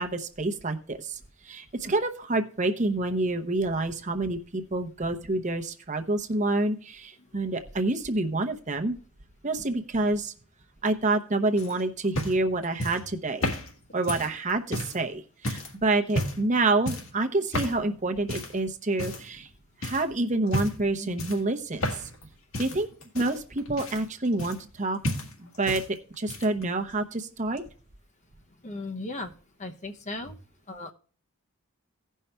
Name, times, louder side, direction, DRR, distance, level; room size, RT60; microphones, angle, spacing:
voice 1, 0.0-9.0 9.4-10.3 10.8-13.5 13.9-19.5 19.8-22.1 22.6-22.9 23.1-25.0 25.4-27.6, right 2 dB, 35° right, 6 dB, 0.8 m, -28 dB
sound 1, 11.6-15.0 15.4-15.7 16.1-16.5 16.8-17.2 17.5-17.8 18.3-18.6 19.0-19.5 19.8-20.0 20.5-20.9 21.2-22.2 22.5-24.8 25.0-25.9 26.1-26.6 27.6-27.7, left 1 dB, 70° left, 1.8 m, -32 dB
voice 2, 28.6-29.3 29.6-30.3 30.7-30.9, left 2 dB, 35° left, 5 dB, 0.8 m, -36 dB
16.5 x 5.5 x 3.3 m, 0.40 s
head